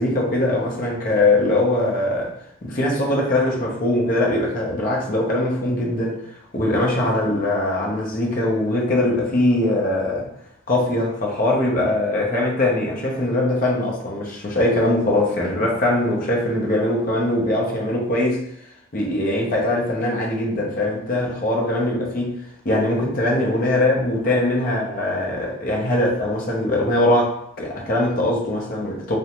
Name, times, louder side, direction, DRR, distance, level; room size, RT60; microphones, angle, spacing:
voice 1, 0.0-2.3 2.6-6.2 6.5-10.3 10.7-18.4 18.9-22.3 22.6-29.2, left 1 dB, 45° left, 0.6 m, -21 dB
2.5 x 2.1 x 2.9 m
head